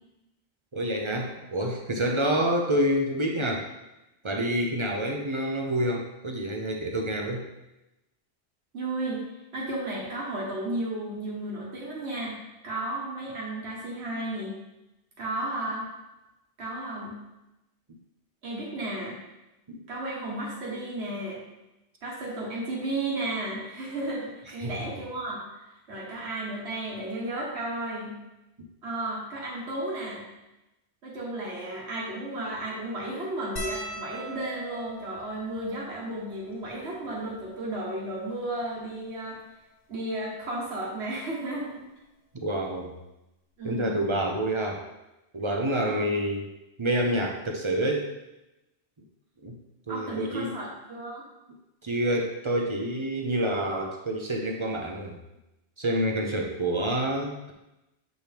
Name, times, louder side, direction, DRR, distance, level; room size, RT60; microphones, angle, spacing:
voice 1, 0.7-3.7 4.2-7.4 19.7-19.8 24.6-24.8 42.3-42.9 43.6-44.8 45.3-46.5 46.8-48.1 49.4-49.6 49.9-50.5 51.8-55.2 55.8-57.5, right 1 dB, 30° right, 1 dB, 0.8 m, -28 dB
voice 2, 2.0-2.4 8.7-9.2 9.5-14.5 15.2-15.9 16.6-17.2 18.4-19.2 19.9-21.4 22.0-25.4 25.9-28.1 28.8-30.3 31.0-39.4 39.9-41.8 43.6-44.0 45.8-46.1 49.9-51.2, right 1 dB, 75° right, -4 dB, 1.8 m, -33 dB
sound 1, 33.6-38.2 38.9-39.0 39.2-39.4 40.6-40.9 42.3-42.4 42.7-42.9, equal, 55° left, 1.4 m, -41 dB
7.7 x 4.4 x 3.5 m, 0.95 s
omnidirectional pair, 1.1 m